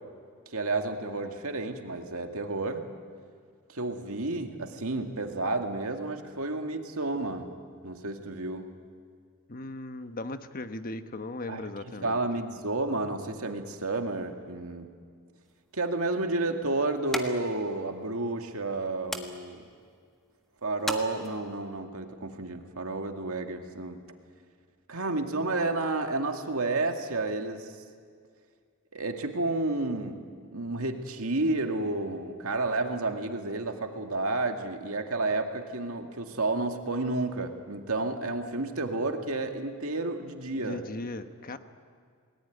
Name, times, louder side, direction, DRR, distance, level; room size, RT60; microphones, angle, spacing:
voice 1, 0.5-2.9 3.7-7.5 7.8-8.7 11.5-11.6 12.0-14.9 15.7-19.7 20.6-24.0 24.9-27.7 28.9-40.8, right 2 dB, 70° right, 4 dB, 2.2 m, -31 dB
voice 2, 9.5-12.2 40.6-41.6, left 2 dB, 40° left, 9 dB, 1.1 m, -37 dB
sound 1, 15.4-21.7, equal, ahead, 1.6 m, -41 dB
29.0 x 20.0 x 9.4 m, 2.1 s
head